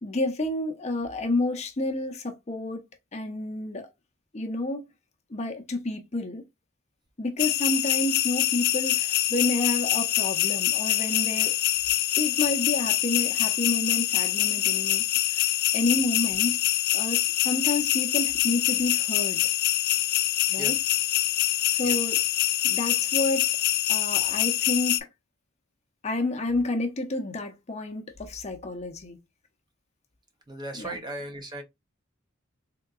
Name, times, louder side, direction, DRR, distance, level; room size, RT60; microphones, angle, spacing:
voice 1, 0.0-2.8 3.1-3.9 4.3-4.8 5.3-6.4 7.2-11.6 12.2-15.0 15.3-16.6 16.9-19.5 20.5-20.8 21.7-22.2 22.6-23.5 23.9-25.1 26.0-29.2 30.7-31.0, left 2 dB, 30° left, 0.7 m, -30 dB
sound 1, 7.4-25.0, left 15 dB, 50° left, 0.3 m, -25 dB
voice 2, 30.5-31.6, right 1 dB, 20° right, 0.5 m, -36 dB
3.6 x 2.8 x 2.3 m
head